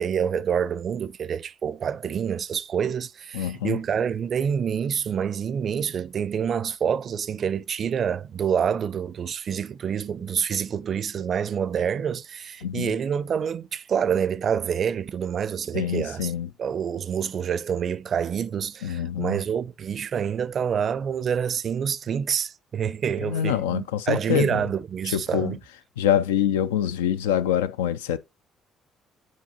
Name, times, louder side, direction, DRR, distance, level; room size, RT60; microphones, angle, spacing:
voice 1, 0.0-16.3 16.6-25.6, right 7 dB, 50° right, 0.4 m, -27 dB
voice 2, 3.3-3.8 12.6-12.9 15.7-16.5 18.8-19.4 23.2-24.6 25.1-25.6 26.0-28.2, left 10 dB, 80° left, 0.3 m, -25 dB
9.4 x 4.6 x 2.8 m
hypercardioid pair, 50°, 0 cm